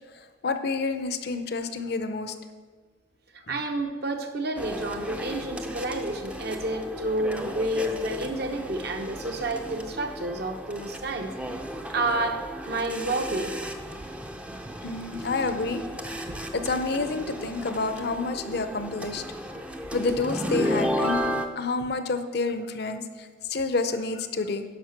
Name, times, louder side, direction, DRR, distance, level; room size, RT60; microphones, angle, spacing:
voice 1, 0.1-2.3 3.5-3.6 14.8-15.8 16.5-19.2 19.9-24.6, left 3 dB, 55° left, 9 dB, 0.6 m, -29 dB
voice 2, 3.5-11.3 11.9-13.5 21.0-21.1, right 2 dB, 55° right, 5 dB, 0.9 m, -30 dB
sound 1, 4.6-21.5, equal, 5° right, 0.5 m, -34 dB
11.0 x 5.7 x 5.9 m, 1.5 s
head